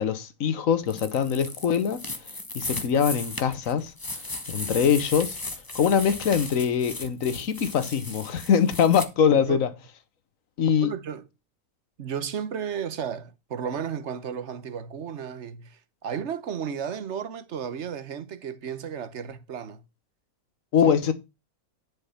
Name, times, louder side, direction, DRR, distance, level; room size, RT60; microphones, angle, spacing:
voice 1, 0.0-2.0 2.5-3.9 4.5-5.4 5.7-9.7 10.6-10.9 20.7-21.1, left 7 dB, 65° left, 1.5 m, -23 dB
sound 1, 0.9-9.1, left 2 dB, 15° left, 1.0 m, -36 dB
voice 2, 10.8-11.3 12.0-19.8 20.8-21.1, right 7 dB, 55° right, 1.2 m, -34 dB
11.0 x 5.3 x 5.6 m
omnidirectional pair, 1.5 m